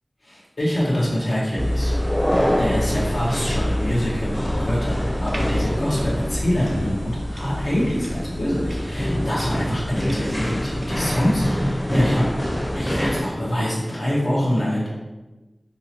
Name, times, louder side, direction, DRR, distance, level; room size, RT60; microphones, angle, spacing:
voice 1, 0.2-2.0 2.6-12.3 12.7-14.9, equal, 90° left, -7 dB, 0.8 m, -25 dB
sound 1, 1.6-13.2, equal, 15° left, 0.5 m, -24 dB
sound 2, 5.2-11.1, right 1 dB, 55° right, 0.3 m, -42 dB
2.9 x 2.8 x 2.8 m, 1.1 s
wide cardioid pair, 65°, 0 cm